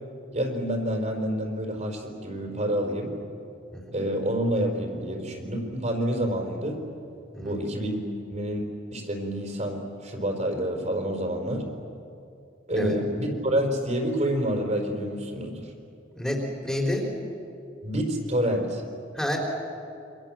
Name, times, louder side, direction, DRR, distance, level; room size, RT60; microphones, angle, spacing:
voice 1, 0.3-3.1 3.9-6.8 7.4-8.0 8.3-11.6 12.7-15.7 17.8-18.8, equal, 35° right, 2 dB, 4.6 m, -28 dB
voice 2, 7.3-7.7 12.8-12.9 16.1-17.1 19.1-19.4, left 1 dB, 5° left, -1 dB, 4.0 m, -29 dB
29.0 x 26.0 x 7.6 m, 2.6 s
head